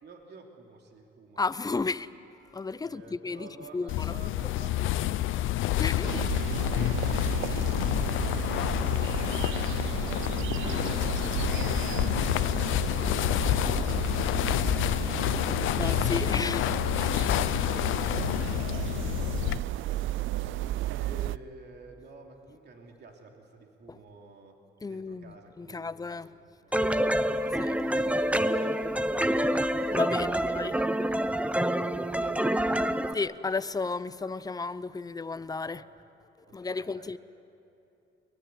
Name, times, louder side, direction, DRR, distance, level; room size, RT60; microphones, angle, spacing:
voice 1, 0.0-1.7 2.8-12.7 13.2-16.3 17.1-17.4 17.6-24.6 24.8-26.4 26.6-26.7 30.1-30.9 32.1-33.1 35.7-35.9 36.5-37.2, right 3 dB, 55° right, 3.1 m, -50 dB
voice 2, 1.4-2.1 2.5-4.2 4.8-4.9 5.4-5.5 5.8-6.3 7.5-7.6 15.8-16.7 23.9-24.0 24.8-26.3 27.5-28.1 29.9-30.8 33.1-35.8 36.5-37.2, left 4 dB, 20° left, 0.7 m, -33 dB
sound 1, 3.9-19.6, left 15 dB, 85° left, 0.6 m, -28 dB
sound 2, 6.0-21.4, right 15 dB, 80° right, 0.5 m, -34 dB
sound 3, 26.7-33.1, equal, 5° right, 0.9 m, -27 dB
23.5 x 20.5 x 9.2 m
cardioid pair, 90°, 20 cm